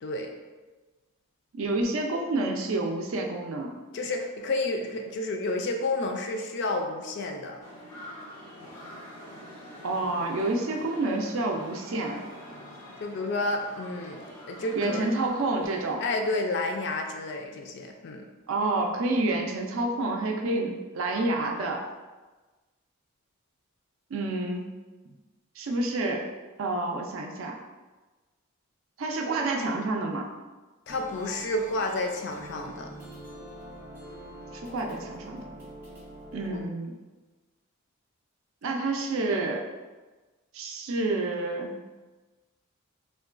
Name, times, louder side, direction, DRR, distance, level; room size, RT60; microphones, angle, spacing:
voice 1, 0.0-0.3 3.9-7.6 13.0-14.2 14.5-15.1 16.0-18.2 30.9-32.9 36.5-36.6, left 2 dB, 50° left, 3 dB, 0.3 m, -30 dB
voice 2, 1.5-3.8 9.8-12.3 14.7-16.0 18.5-21.8 24.1-24.7 25.6-26.3 26.6-27.6 29.0-30.3 34.5-35.4 36.3-37.0 38.6-39.7 40.5-41.7, right 2 dB, 65° right, 2 dB, 0.4 m, -29 dB
sound 1, 7.6-15.9, equal, 90° left, 0.7 m, -45 dB
sound 2, 30.9-36.6, right 1 dB, 10° right, 0.6 m, -44 dB
3.6 x 2.2 x 2.4 m, 1.2 s
head